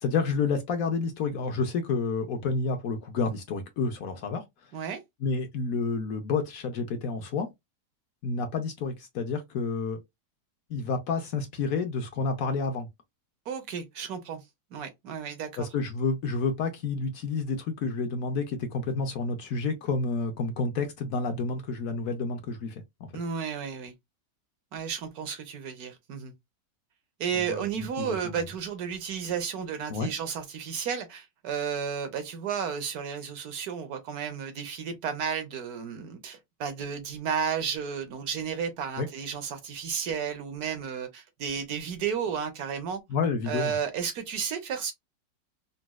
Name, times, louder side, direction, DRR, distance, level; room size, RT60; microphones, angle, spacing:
voice 1, 0.0-4.4 5.2-7.5 8.2-10.0 10.7-12.9 15.6-23.1 27.4-28.4 29.9-30.1 39.0-39.1 43.1-43.8, left 4 dB, 65° left, 1.0 m, -29 dB
voice 2, 13.5-14.4 14.7-15.7 23.1-23.9 24.7-26.3 27.2-43.0 43.5-44.9, right 7 dB, 70° right, 1.2 m, -33 dB
4.0 x 2.2 x 2.2 m
omnidirectional pair, 1.8 m